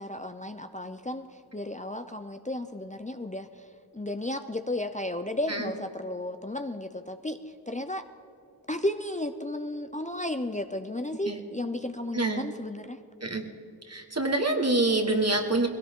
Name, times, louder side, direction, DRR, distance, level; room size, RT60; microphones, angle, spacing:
voice 1, 0.0-3.7 3.9-7.4 7.7-8.1 8.7-13.0, left 1 dB, 20° left, 7 dB, 0.6 m, -33 dB
voice 2, 12.1-12.5 13.2-13.4 13.9-15.7, right 2 dB, 40° right, 3 dB, 1.6 m, -26 dB
21.5 x 17.0 x 3.7 m, 2.6 s
wide cardioid pair, 40°, 38 cm